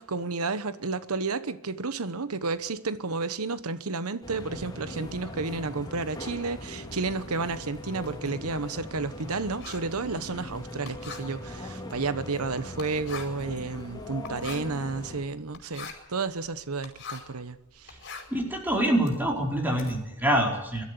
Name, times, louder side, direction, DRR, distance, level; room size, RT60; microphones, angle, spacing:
voice 1, 0.0-17.9, right 3 dB, 85° right, 1.1 m, -31 dB
sound 1, 4.2-15.2, left 1 dB, 20° left, 3.3 m, -40 dB
Writing, 7.2-17.4 17.8-19.9, left 5 dB, 55° left, 5.0 m, -44 dB
voice 2, 18.3-20.8, right 1 dB, 10° right, 4.4 m, -25 dB
22.5 x 13.0 x 9.6 m
head